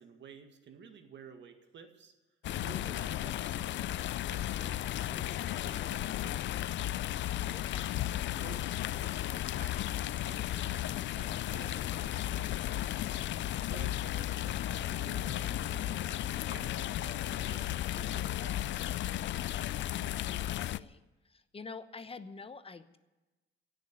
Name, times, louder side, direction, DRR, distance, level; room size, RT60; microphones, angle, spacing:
voice 1, 0.0-2.1 2.5-3.9 4.3-6.6 8.4-13.1 13.6-16.2 16.5-18.9, right 6 dB, 65° right, 6 dB, 1.9 m, -52 dB
sound 1, 2.4-20.8, left 13 dB, 65° left, 0.5 m, -34 dB
voice 2, 7.3-7.9 19.8-21.0 21.3-23.0, left 4 dB, 30° left, 11 dB, 0.9 m, -48 dB
16.5 x 6.9 x 9.8 m, 1.1 s
cardioid pair, 90°, 20 cm